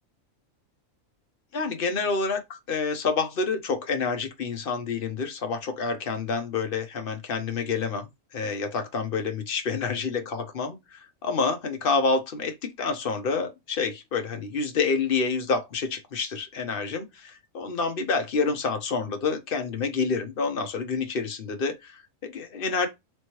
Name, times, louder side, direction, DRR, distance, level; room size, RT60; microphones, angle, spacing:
voice 1, 1.5-22.9, left 4 dB, 50° left, 0.9 m, -28 dB
4.3 x 3.1 x 3.0 m
omnidirectional pair, 1.4 m